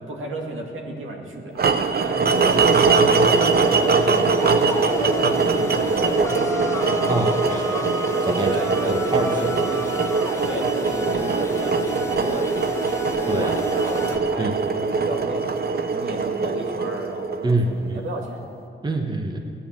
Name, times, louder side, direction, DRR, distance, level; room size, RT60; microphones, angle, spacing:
voice 1, 0.0-1.7 2.0-4.9 5.3-7.9 8.4-9.0 9.3-9.8 10.4-15.5 15.9-18.4, right 2 dB, 75° right, 1 dB, 2.1 m, -33 dB
sound 1, 1.6-17.7, right 4 dB, 50° right, 0.8 m, -22 dB
sound 2, 2.3-14.2, left 2 dB, 15° left, 1.5 m, -30 dB
voice 2, 7.1-7.8 8.2-8.6 8.9-9.5 13.3-13.5 14.4-14.5 17.4-18.0 18.8-19.4, right 2 dB, 20° right, 3 dB, 1.2 m, -25 dB
16.0 x 9.9 x 7.4 m, 2.7 s
wide cardioid pair, 115°, 20 cm